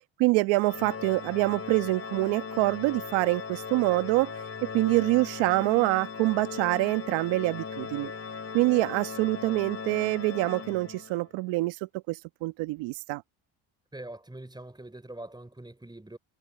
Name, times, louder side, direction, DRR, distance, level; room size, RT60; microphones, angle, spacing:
voice 1, 0.2-4.3 4.7-8.1 8.5-13.2, right 22 dB, 80° right, 1.4 m, -26 dB
Organ, 0.6-11.3, left 5 dB, 30° left, 3.9 m, -38 dB
voice 2, 13.9-16.2, right 1 dB, 10° right, 4.0 m, -43 dB
supercardioid pair, 70°, 44 cm